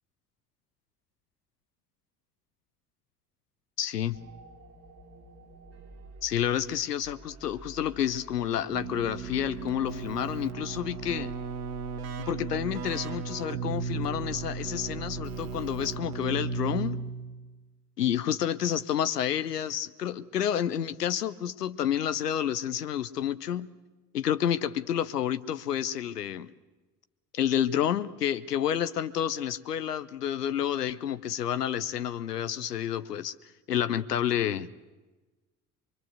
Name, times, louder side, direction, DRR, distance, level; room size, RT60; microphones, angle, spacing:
voice 1, 3.8-4.2 6.2-11.3 12.2-17.0 18.0-23.7 24.1-26.5 27.3-33.3 33.7-34.7, left 10 dB, 85° left, 13 dB, 0.8 m, -29 dB
sound 1, 4.1-16.7, right 2 dB, 30° right, 5.6 m, -50 dB
Keyboard (musical), 8.7-17.4, right 5 dB, 75° right, 2.0 m, -35 dB
24.5 x 24.0 x 8.0 m, 1.2 s
figure-of-eight pair, 60°, 46 cm